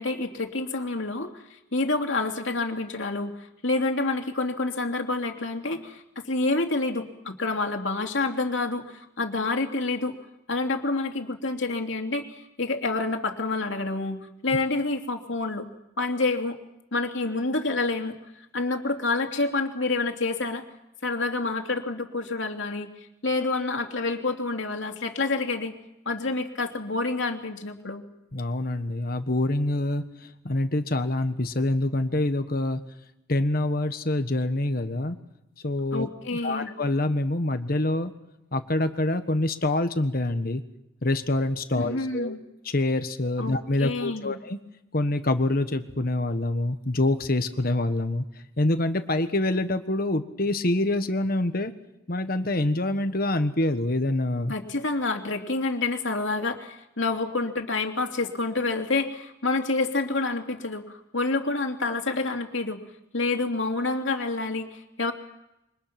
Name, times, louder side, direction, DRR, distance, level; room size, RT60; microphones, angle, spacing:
voice 1, 0.0-10.1 10.5-15.7 16.0-16.6 16.9-20.6 21.0-22.9 23.2-25.7 26.0-28.0 35.9-36.7 41.7-42.4 43.4-44.4 54.5-62.8 63.1-65.1, left 3 dB, 70° left, 3 dB, 2.8 m, -28 dB
voice 2, 28.3-30.0 30.4-32.8 33.3-35.2 35.6-36.1 36.4-38.1 38.5-40.6 41.0-42.4 42.6-44.6 44.9-48.3 48.6-51.7 52.1-54.5, left 2 dB, 45° left, 8 dB, 1.4 m, -26 dB
28.0 x 24.5 x 6.0 m, 0.88 s
head